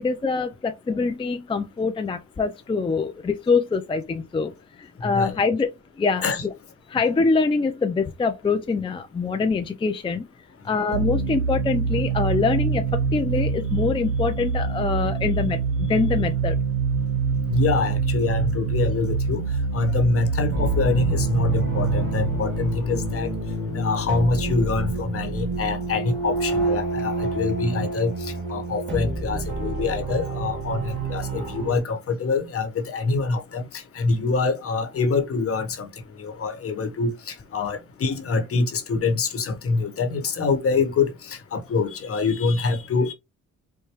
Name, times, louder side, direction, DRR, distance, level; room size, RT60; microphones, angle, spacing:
voice 1, 0.0-4.5 4.8-5.7 6.0-6.5 6.9-10.2 10.6-16.6, left 4 dB, 20° left, 0.4 m, -24 dB
sound 1, 10.9-24.2, right 5 dB, 80° right, 0.6 m, -25 dB
voice 2, 17.5-19.4 19.7-23.3 23.7-35.9 36.2-43.1, left 4 dB, 50° left, 1.1 m, -25 dB
sound 2, 20.5-31.8, right 2 dB, 40° right, 1.8 m, -29 dB
4.7 x 2.2 x 2.9 m
cardioid pair, 90°, 30 cm